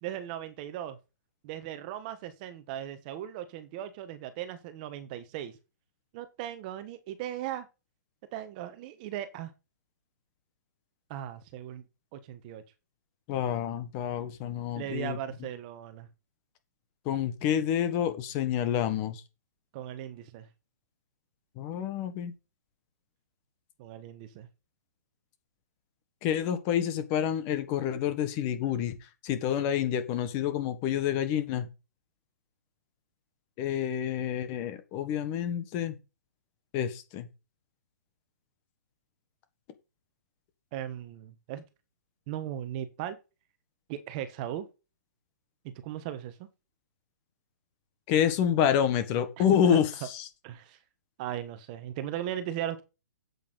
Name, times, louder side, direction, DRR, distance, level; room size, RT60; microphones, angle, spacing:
voice 1, 0.0-1.0 1.4-5.5 6.1-7.7 8.3-9.5 11.1-11.8 12.1-12.6 14.7-16.1 19.7-20.5 23.8-24.5 28.6-28.7 40.7-41.6 42.3-43.2 43.9-44.7 45.8-46.5 49.4-49.5 49.7-49.8 50.4-50.8 51.2-52.8, right 11 dB, 25° right, 1.3 m, -37 dB
voice 2, 13.3-15.2 17.0-19.2 21.6-22.3 26.2-29.0 29.2-31.7 33.6-35.9 36.7-37.3 48.1-50.3, left 9 dB, 25° left, 1.6 m, -28 dB
8.4 x 8.4 x 4.1 m
hypercardioid pair, 165°, 10 cm